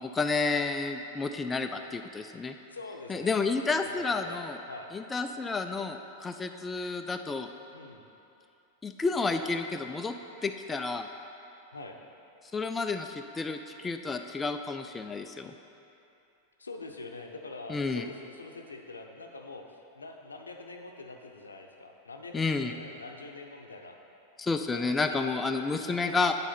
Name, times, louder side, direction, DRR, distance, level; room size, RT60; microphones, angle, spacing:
voice 1, 0.0-2.5 3.1-4.6 4.9-7.5 8.8-10.1 10.4-11.1 12.5-15.5 17.7-18.0 22.3-22.7 24.4-26.3, left 4 dB, 15° left, 6 dB, 0.3 m, -30 dB
voice 2, 2.7-3.4 3.7-4.4 4.7-4.9 7.7-8.0 11.7-12.0 16.6-24.0 24.7-25.3 25.8-26.3, left 3 dB, 75° left, 3 dB, 0.7 m, -44 dB
8.7 x 7.0 x 4.2 m, 2.8 s
figure-of-eight pair, 90°, 0 cm